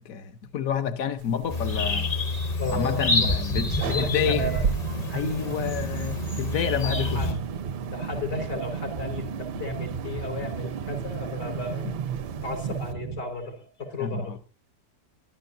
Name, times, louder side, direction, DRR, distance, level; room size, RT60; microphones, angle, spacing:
voice 1, 0.0-2.1 2.7-4.4 5.1-7.3 14.0-14.4, left 8 dB, 60° left, 1.3 m, -29 dB
sound 1, 1.2-12.9, right 6 dB, 80° right, 1.4 m, -37 dB
sound 2, 1.5-7.3, left 2 dB, 30° left, 0.9 m, -28 dB
voice 2, 2.6-3.4 3.8-4.7 6.8-7.3 7.9-11.9 12.4-14.4, left 2 dB, 80° left, 4.9 m, -33 dB
sound 3, 3.5-13.2, right 7 dB, 60° right, 0.5 m, -34 dB
24.5 x 12.0 x 2.6 m
omnidirectional pair, 1.8 m